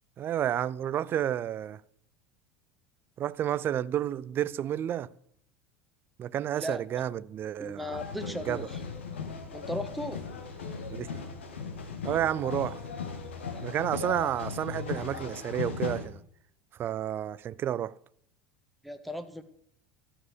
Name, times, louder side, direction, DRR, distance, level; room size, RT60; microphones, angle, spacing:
voice 1, 0.2-1.8 3.2-5.1 6.2-8.7 10.9-11.1 12.0-12.8 13.6-16.2 16.8-17.9, right 10 dB, 35° right, 0.4 m, -31 dB
voice 2, 7.6-8.6 9.5-10.2 18.8-19.4, left 1 dB, ahead, 1.3 m, -36 dB
sound 1, 7.9-16.1, left 5 dB, 75° left, 1.6 m, -37 dB
12.5 x 7.1 x 6.9 m
figure-of-eight pair, 75°, 6 cm